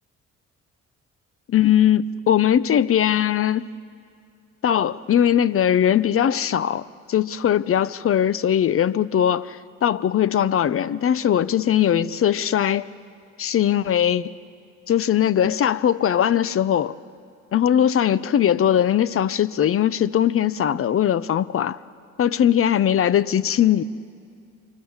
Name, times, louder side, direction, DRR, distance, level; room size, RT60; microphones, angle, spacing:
voice 1, 1.5-3.7 4.6-12.9 13.4-14.3 14.9-16.9 17.5-21.8 22.2-23.8, left 10 dB, 45° left, 18 dB, 0.7 m, -20 dB
30.0 x 25.0 x 7.3 m, 2.3 s
cardioid pair, 90°, 30 cm